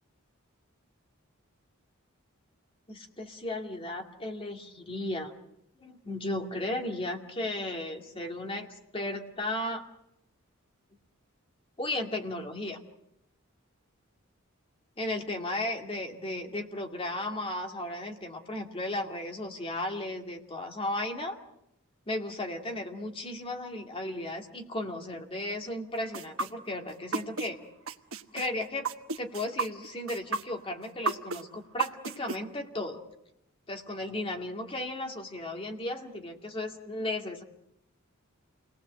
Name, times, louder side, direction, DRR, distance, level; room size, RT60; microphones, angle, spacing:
voice 1, 2.9-5.3 5.8-8.7 8.9-9.8 11.8-12.8 15.0-21.4 22.1-27.6 28.3-28.9 29.2-33.0 33.7-37.4, left 1 dB, 25° left, 3 dB, 2.4 m, -35 dB
sound 1, 26.1-27.5 27.9-32.4, right 4 dB, 75° right, 1.1 m, -32 dB
28.5 x 19.5 x 7.7 m, 0.82 s
head